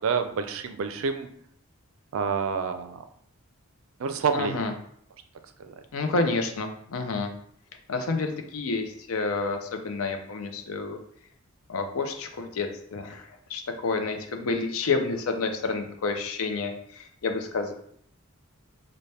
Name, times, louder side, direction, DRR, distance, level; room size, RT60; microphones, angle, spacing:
voice 1, 0.0-1.3 2.1-3.0 4.0-4.6 5.6-5.7, right 6 dB, 65° right, 8 dB, 0.4 m, -28 dB
voice 2, 4.3-4.7 5.9-7.3 7.9-11.0 11.7-17.7, left 3 dB, 75° left, 5 dB, 0.5 m, -29 dB
4.1 x 2.1 x 3.3 m, 0.67 s
head